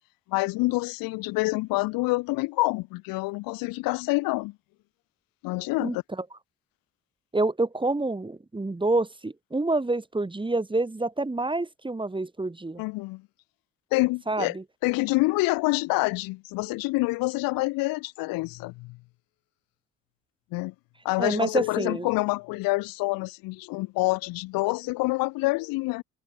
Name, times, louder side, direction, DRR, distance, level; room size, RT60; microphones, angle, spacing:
voice 1, 0.3-4.5 5.4-6.0 12.8-13.2 13.9-14.5 14.8-19.0 20.5-20.7 21.0-26.0, left 23 dB, 90° left, 1.3 m, -27 dB
voice 2, 7.3-12.8 14.3-14.6 21.2-22.1, right 2 dB, 15° right, 1.6 m, -27 dB
supercardioid pair, 70°, 34 cm